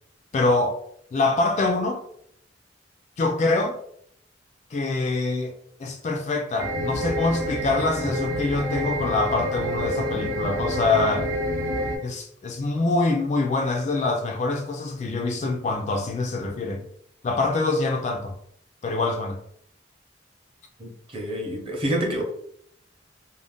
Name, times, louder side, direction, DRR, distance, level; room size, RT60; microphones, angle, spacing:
voice 1, 0.3-0.8 1.1-2.0 3.2-3.8 4.7-5.5 5.8-11.3 12.0-16.9 17.2-18.4 18.8-19.4, left 3 dB, 40° left, 0.3 m, -25 dB
sound 1, 6.6-12.0, equal, 90° right, 0.8 m, -28 dB
voice 2, 20.8-22.2, right 1 dB, 30° right, 0.7 m, -28 dB
2.5 x 2.1 x 3.4 m
head